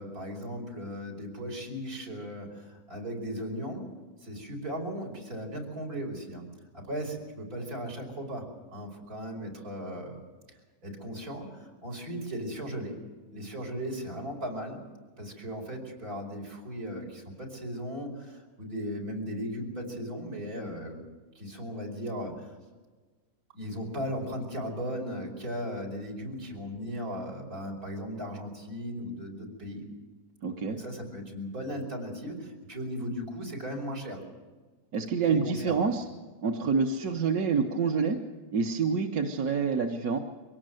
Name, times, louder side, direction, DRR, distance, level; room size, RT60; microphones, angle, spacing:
voice 1, 0.0-3.8 4.2-6.5 6.7-8.5 8.7-10.2 10.5-10.6 10.8-13.0 13.3-14.8 15.2-21.0 21.4-22.5 23.5-29.8 30.7-34.2 35.2-35.8, equal, 90° right, 0 dB, 5.5 m, -37 dB
voice 2, 30.4-30.8 34.9-36.1 36.4-38.2 38.5-40.2, right 5 dB, 75° right, 3 dB, 1.6 m, -27 dB
24.0 x 17.5 x 7.7 m, 1.3 s
omnidirectional pair, 1.6 m